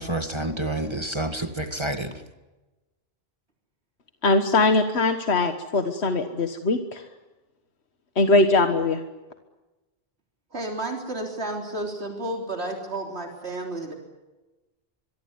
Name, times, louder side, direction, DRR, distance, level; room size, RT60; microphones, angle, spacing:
voice 1, 0.0-2.2, right 1 dB, 25° right, 7 dB, 1.8 m, -29 dB
voice 2, 4.2-7.0 8.2-9.0, left 2 dB, 90° left, 7 dB, 1.7 m, -21 dB
voice 3, 10.5-13.9, right 2 dB, 85° right, 2 dB, 3.8 m, -31 dB
25.0 x 23.0 x 9.6 m, 1.1 s
omnidirectional pair, 1.1 m